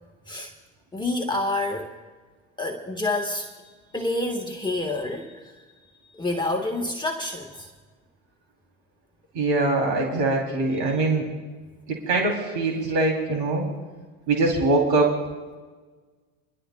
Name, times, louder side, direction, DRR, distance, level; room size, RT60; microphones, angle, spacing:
voice 1, 0.9-2.0 2.6-5.5 6.1-7.7, left 2 dB, 10° left, 1 dB, 1.3 m, -28 dB
voice 2, 9.3-11.2 11.9-13.7 14.3-15.2, right 2 dB, 75° right, 0 dB, 3.2 m, -23 dB
29.5 x 12.0 x 2.3 m, 1.4 s
hypercardioid pair, 85°, 40 cm